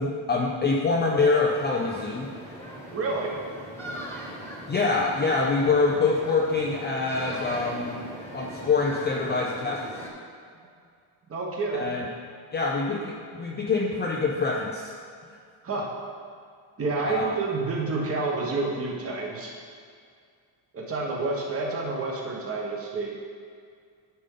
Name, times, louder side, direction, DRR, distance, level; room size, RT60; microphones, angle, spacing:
voice 1, 0.0-2.3 4.7-8.0 8.3-9.8 11.7-12.1 12.5-14.9 15.3-15.4 17.1-17.3, left 4 dB, 25° left, -2 dB, 0.5 m, -25 dB
sound 1, 1.5-10.1, equal, 5° left, 1.5 m, -40 dB
voice 2, 2.9-3.4 11.3-11.9 15.6-15.9 16.8-19.5 20.7-23.1, right 3 dB, 30° right, -2 dB, 1.3 m, -29 dB
10.0 x 5.3 x 3.8 m, 2.2 s
cardioid pair, 140°, 45 cm